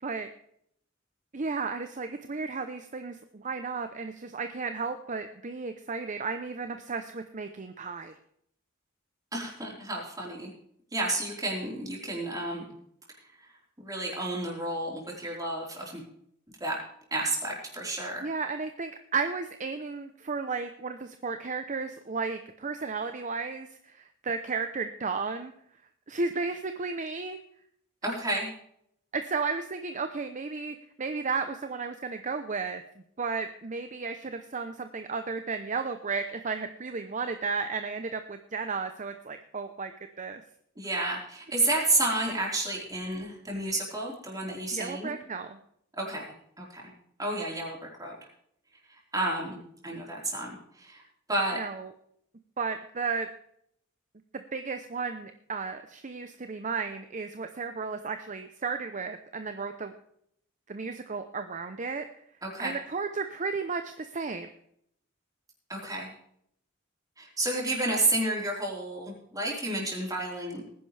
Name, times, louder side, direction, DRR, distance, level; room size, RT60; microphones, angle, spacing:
voice 1, 1.3-8.1 18.2-25.5 26.1-27.4 29.1-32.8 33.2-39.9 40.2-40.4 44.7-45.6 51.5-51.9 52.6-53.3 54.3-59.9 60.7-62.0 62.6-64.5, right 4 dB, 40° right, 8 dB, 0.7 m, -33 dB
voice 2, 9.3-10.5 10.9-12.6 13.4-13.5 13.8-16.0 16.6-16.8 17.1-18.2 28.0-28.5 40.8-45.1 46.0-46.3 46.6-46.9 47.2-48.1 49.1-49.6 49.8-50.5 50.7-51.0 51.3-51.6 62.4-62.7 65.7-66.1 67.2-70.7, right 2 dB, 20° right, -2 dB, 4.2 m, -31 dB
19.5 x 10.5 x 3.4 m, 0.71 s
head